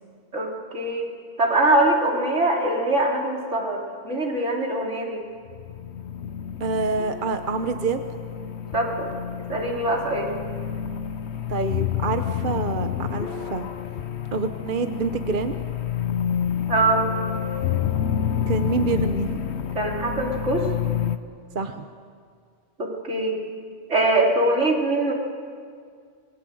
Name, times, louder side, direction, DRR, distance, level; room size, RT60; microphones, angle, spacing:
voice 1, 0.3-1.1 1.4-5.2 8.7-9.1 9.5-10.3 16.7-17.0 19.8-20.7 22.8-23.4 23.9-25.1, right 2 dB, 80° right, -1 dB, 3.8 m, -23 dB
sound 1, 5.5-21.2, left 9 dB, 65° left, 1.2 m, -29 dB
voice 2, 6.6-8.0 11.5-13.7 14.3-15.5 18.5-19.4 21.5-21.9, right 4 dB, 45° right, 7 dB, 1.1 m, -27 dB
27.0 x 21.5 x 7.8 m, 2.1 s
omnidirectional pair, 1.2 m